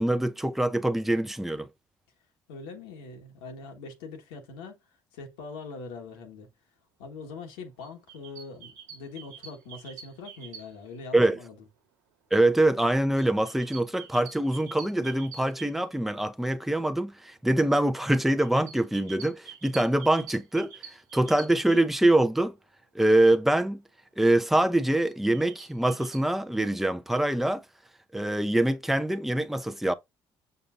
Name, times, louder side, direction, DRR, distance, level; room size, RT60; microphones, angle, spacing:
voice 1, 0.0-1.7 11.1-11.4 12.3-20.7 21.1-22.5 22.9-23.8 24.2-27.6 28.1-29.9, right 1 dB, ahead, 0.7 m, -24 dB
voice 2, 2.5-6.5 7.0-11.6, left 4 dB, 80° left, 1.4 m, -42 dB
sound 1, 7.8-11.0 13.2-16.3 18.1-21.8 25.1-26.2, right 7 dB, 90° right, 1.5 m, -47 dB
6.8 x 5.4 x 2.6 m
hypercardioid pair, 55°, 10 cm